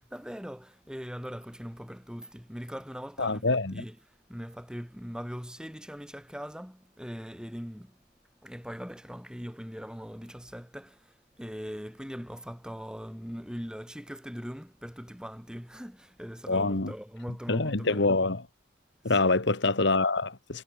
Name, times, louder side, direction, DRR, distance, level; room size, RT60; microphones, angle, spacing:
voice 1, 0.0-8.0 8.4-18.2 19.0-19.4, equal, 5° right, 5.1 m, -41 dB
voice 2, 3.2-3.7 16.5-16.9 17.5-18.4 19.0-20.6, left 3 dB, 60° left, 1.5 m, -25 dB
head